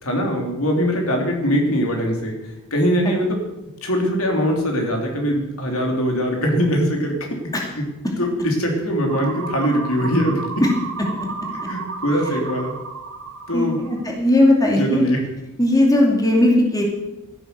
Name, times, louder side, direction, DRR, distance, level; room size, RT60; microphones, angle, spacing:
voice 1, 0.0-2.3 2.7-3.4 3.8-7.2 8.2-10.4 11.7-12.7 13.5-13.9 14.8-15.2, equal, 65° left, 1 dB, 3.1 m, -21 dB
sound 1, 9.1-14.1, right 4 dB, 60° right, 1.9 m, -32 dB
voice 2, 13.5-15.1 15.6-16.8, left 1 dB, 15° left, 0 dB, 2.5 m, -17 dB
13.5 x 11.0 x 6.7 m, 0.98 s
head